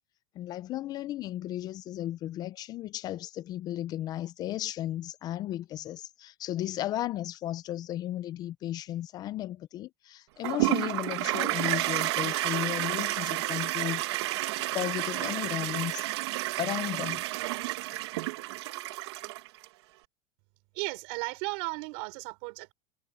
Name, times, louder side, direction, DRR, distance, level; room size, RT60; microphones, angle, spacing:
voice 1, 0.4-16.1 16.6-17.2, left 13 dB, 30° left, 0.4 m, -35 dB
Toilet flush, 10.4-19.7, right 18 dB, 75° right, 1.7 m, -31 dB
voice 2, 20.7-22.7, right 29 dB, 55° right, 3.9 m, -35 dB
supercardioid pair, 160°, 14 cm